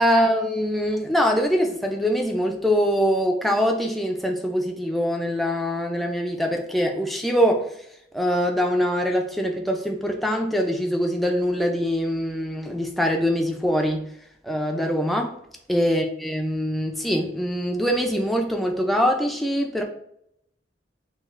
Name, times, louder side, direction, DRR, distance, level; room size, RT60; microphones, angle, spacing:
voice 1, 0.0-7.6 8.1-14.0 14.4-15.3 15.7-19.8, equal, ahead, 2 dB, 0.4 m, -23 dB
6.0 x 2.4 x 2.4 m, 0.74 s
head